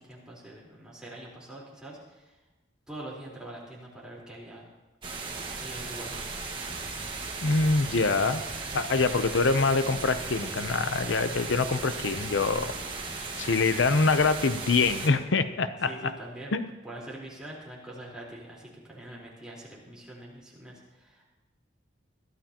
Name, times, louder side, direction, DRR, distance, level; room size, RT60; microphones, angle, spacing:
voice 1, 0.0-2.4 2.9-4.7 5.5-6.3 15.9-16.6 16.8-21.2, right 1 dB, 5° right, -5 dB, 4.0 m, -44 dB
sound 1, 5.0-15.1, right 3 dB, 25° right, 1.6 m, -36 dB
voice 2, 7.4-12.7 13.4-16.1 16.5-16.7, left 3 dB, 80° left, 10 dB, 0.7 m, -25 dB
21.5 x 14.0 x 2.9 m, 1.1 s
head